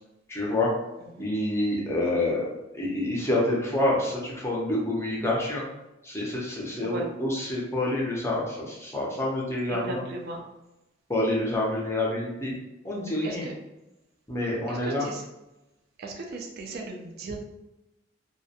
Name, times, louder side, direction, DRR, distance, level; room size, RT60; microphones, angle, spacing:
voice 1, 0.3-0.7 1.2-2.5 2.7-5.6 6.0-10.0 11.1-12.5 12.8-13.5 14.3-15.1, left 1 dB, 15° left, -4 dB, 0.5 m, -27 dB
voice 2, 9.7-10.4 13.2-13.5 14.7-15.2 16.0-17.4, right 2 dB, 50° right, 1 dB, 0.4 m, -36 dB
2.3 x 2.1 x 2.7 m, 0.94 s
head